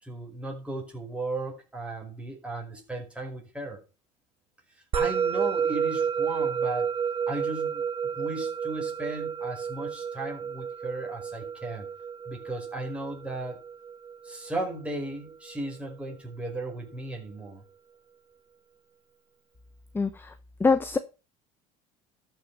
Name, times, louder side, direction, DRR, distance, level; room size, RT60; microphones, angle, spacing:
voice 1, 0.0-3.8 4.9-6.9 7.3-7.8 8.1-11.9 12.2-13.6 14.2-17.6, right 2 dB, 5° right, 0 dB, 4.9 m, -36 dB
Musical instrument, 4.9-15.5, right 7 dB, 35° right, 1.1 m, -31 dB
voice 2, 19.9-20.3 20.6-21.0, left 4 dB, 15° left, 11 dB, 0.8 m, -23 dB
13.0 x 6.1 x 5.4 m, 0.32 s
supercardioid pair, 120°, 16 cm